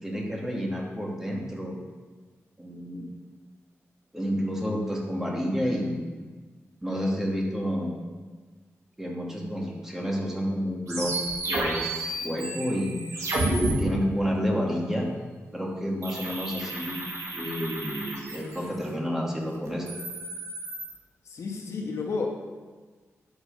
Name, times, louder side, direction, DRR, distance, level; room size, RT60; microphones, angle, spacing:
voice 1, 0.0-1.7 2.6-3.1 4.1-6.2 6.8-8.0 9.0-11.1 11.5-13.1 13.8-15.1 15.5-17.0 17.3-20.1, equal, 10° right, -2 dB, 2.5 m, -30 dB
sound 1, 10.9-13.7 16.0-18.8 19.7-20.9, right 2 dB, 85° right, 2.4 m, -31 dB
voice 2, 21.2-22.3, left 4 dB, 70° left, 0 dB, 1.6 m, -31 dB
10.5 x 6.9 x 5.5 m, 1.4 s
cardioid pair, 75°, 5 cm